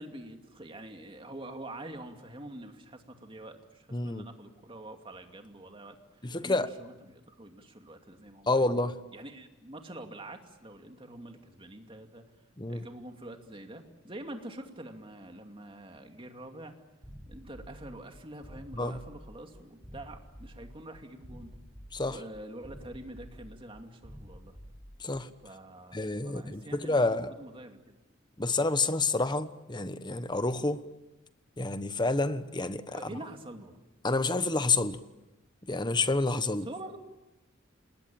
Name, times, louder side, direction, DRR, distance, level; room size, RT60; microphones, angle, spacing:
voice 1, 0.0-12.2 12.7-16.7 17.3-21.5 22.0-24.6 25.4-28.0 32.9-33.8 36.6-37.0, right 1 dB, 25° right, 2.5 m, -46 dB
voice 2, 3.9-4.2 6.2-6.7 8.5-8.9 12.6-12.8 18.8-19.0 21.9-22.2 25.0-25.3 25.9-27.3 28.4-30.8 31.6-33.1 34.0-35.0 35.7-36.7, left 3 dB, 20° left, 1.1 m, -29 dB
sound 1, 17.0-25.3, equal, ahead, 5.2 m, -50 dB
28.5 x 20.5 x 9.0 m
head